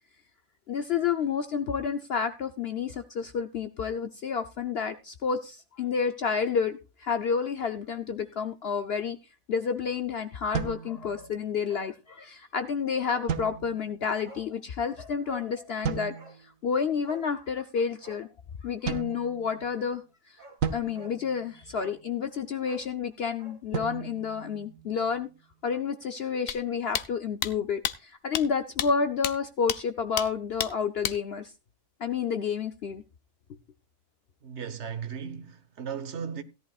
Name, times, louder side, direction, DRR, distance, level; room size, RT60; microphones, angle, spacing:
voice 1, 0.7-9.2 9.5-16.1 16.6-18.3 18.6-20.0 20.7-25.3 25.6-31.5 32.0-33.0, left 6 dB, 55° left, 0.8 m, -30 dB
sound 1, 10.5-11.6 13.3-14.1 15.8-16.5 18.9-19.9 20.6-22.1 23.7-25.2, right 7 dB, 75° right, 1.3 m, -36 dB
Bark, 14.2-14.5 14.8-14.9 15.2-15.5 16.1-16.4 17.0-17.3 18.0-18.3 19.9-20.0 20.4-20.6 20.9-21.2 21.7-22.0 22.6-23.6 23.9-24.0, right 2 dB, 35° right, 2.1 m, -48 dB
sound 2, 26.5-26.6 26.9-27.1 27.4-27.5 27.8-27.9 28.3-28.4 28.8-28.9 29.2-29.3 29.7-29.8 30.2-30.3 30.6-30.7 31.0-31.2, left 10 dB, 80° left, 1.1 m, -29 dB
voice 2, 34.4-36.4, right 7 dB, 55° right, 1.4 m, -36 dB
16.5 x 11.0 x 2.4 m
omnidirectional pair, 1.4 m